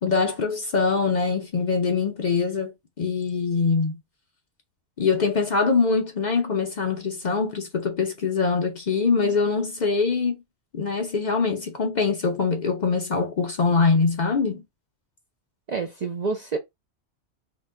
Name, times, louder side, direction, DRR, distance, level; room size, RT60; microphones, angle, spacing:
voice 1, 0.0-2.7 3.0-4.0 5.0-10.4 10.7-14.6, left 4 dB, 50° left, 0.6 m, -23 dB
voice 2, 15.7-16.6, right 4 dB, 50° right, 0.5 m, -28 dB
3.0 x 2.1 x 3.5 m
omnidirectional pair, 1.2 m